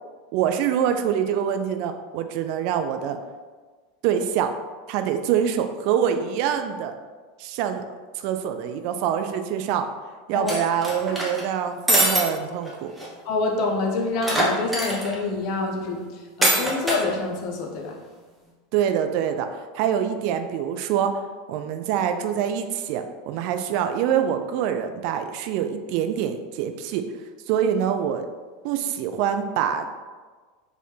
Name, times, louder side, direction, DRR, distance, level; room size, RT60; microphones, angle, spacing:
voice 1, 0.3-3.2 4.0-4.5 4.9-6.9 7.4-7.8 8.1-9.9 10.3-12.9 18.7-21.2 21.5-27.1 27.5-28.3 28.6-29.9, right 9 dB, 55° right, 7 dB, 0.3 m, -25 dB
sound 1, 10.5-11.4 11.9-12.2 12.6-12.7 13.0-13.1 14.2-15.2 16.4-17.0, right 1 dB, 5° right, 1.1 m, -22 dB
voice 2, 13.2-18.0, left 3 dB, 50° left, 2 dB, 0.7 m, -27 dB
4.3 x 3.3 x 3.2 m, 1.4 s
figure-of-eight pair, 80°, 0 cm